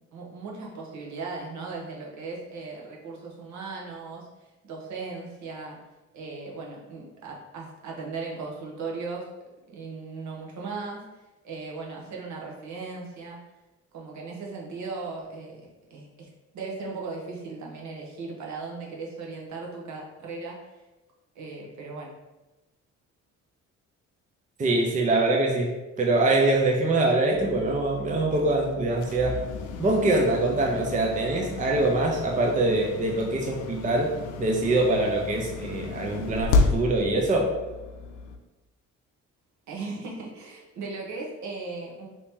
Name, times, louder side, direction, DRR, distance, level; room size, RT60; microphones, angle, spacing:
voice 1, 0.0-4.3 4.6-5.8 6.1-9.3 9.7-11.1 11.4-13.4 13.9-16.3 16.5-20.6 21.3-22.1 39.7-42.1, right 4 dB, 70° right, -2 dB, 0.9 m, -37 dB
voice 2, 24.6-25.7 26.0-29.4 29.8-34.1 34.4-37.5, right 2 dB, 25° right, 1 dB, 0.5 m, -24 dB
sound 1, 27.3-38.4, left 3 dB, 90° left, 0.5 m, -32 dB
2.9 x 2.8 x 3.5 m, 1.1 s
cardioid pair, 90°, 30 cm